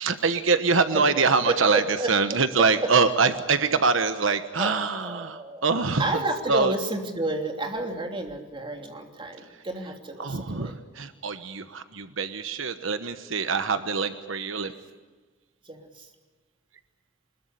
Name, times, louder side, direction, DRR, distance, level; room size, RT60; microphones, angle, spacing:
voice 1, 0.0-6.2 6.5-6.7 10.2-14.7, right 4 dB, 85° right, 9 dB, 1.2 m, -24 dB
voice 2, 1.4-2.1 4.6-5.6 6.0-10.7 15.6-16.1, right 2 dB, 25° right, 3 dB, 3.2 m, -31 dB
25.0 x 21.5 x 8.2 m, 1.3 s
head